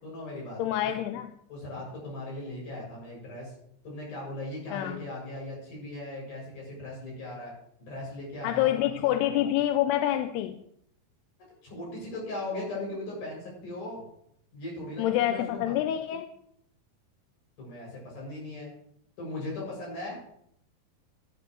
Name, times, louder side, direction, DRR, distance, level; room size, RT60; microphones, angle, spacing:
voice 1, 0.0-0.9 1.5-3.5 3.8-7.5 7.8-8.7 9.0-9.1 11.6-14.0 14.5-15.8 17.6-18.7 19.2-20.2, left 2 dB, 65° left, -3 dB, 8.5 m, -38 dB
voice 2, 0.6-1.3 4.7-5.0 8.4-10.6 15.0-16.3, left 12 dB, 90° left, 7 dB, 2.7 m, -27 dB
15.0 x 13.0 x 3.1 m, 0.72 s
omnidirectional pair, 4.6 m